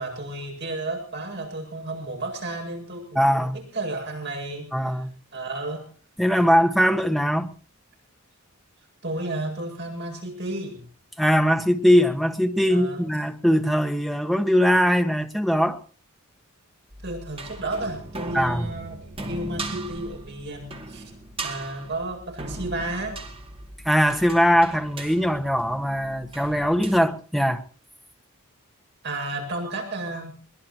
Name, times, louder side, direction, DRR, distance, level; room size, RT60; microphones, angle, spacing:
voice 1, 0.0-5.1 5.3-5.8 9.0-10.8 12.7-13.0 17.0-21.1 21.4-23.2 29.0-30.3, right 2 dB, 50° right, 8.0 m, -32 dB
voice 2, 3.1-3.6 4.7-5.1 6.2-7.5 11.2-15.8 18.3-18.7 23.8-27.6, equal, ahead, 1.4 m, -21 dB
sound 1, 16.9-27.0, right 2 dB, 25° right, 2.5 m, -38 dB
22.5 x 21.0 x 3.0 m
head